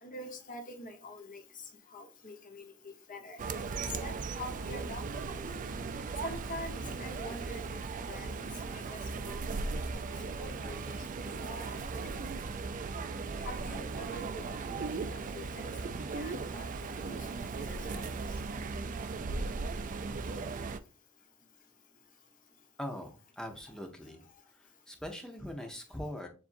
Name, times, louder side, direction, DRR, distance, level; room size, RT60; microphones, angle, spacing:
voice 1, 0.0-1.4 1.9-5.2 6.2-7.8 8.1-9.4 10.2-11.0 11.2-11.8 13.4-14.4 14.8-15.7 16.1-17.2 17.4-18.1, left 1 dB, 40° left, 3 dB, 1.1 m, -45 dB
sound 1, 3.4-20.8, right 4 dB, 35° right, 0.3 m, -37 dB
voice 2, 22.8-24.2 24.6-26.3, left 1 dB, 5° left, 4 dB, 0.7 m, -42 dB
7.2 x 2.6 x 2.5 m, 0.33 s
head